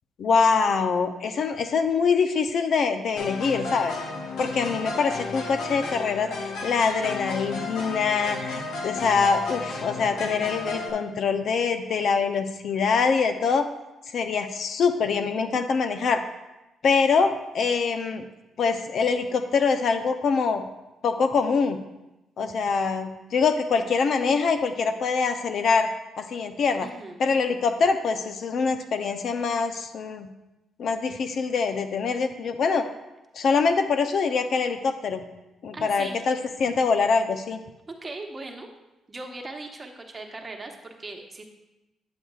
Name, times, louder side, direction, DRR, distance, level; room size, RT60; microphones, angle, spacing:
voice 1, 0.2-3.9 4.4-13.7 14.1-16.2 16.8-18.2 18.6-20.6 21.0-21.8 22.4-25.9 26.2-26.9 27.2-30.3 30.8-32.9 33.3-35.2 35.6-37.6, left 5 dB, 60° left, 8 dB, 0.5 m, -24 dB
sound 1, 3.2-10.9, left 3 dB, 85° left, 1.2 m, -33 dB
voice 2, 26.8-27.2 35.7-36.2 37.9-38.7 39.1-41.5, right 2 dB, 30° right, 3 dB, 1.0 m, -39 dB
8.6 x 8.2 x 2.4 m, 0.98 s
cardioid pair, 90°, 0 cm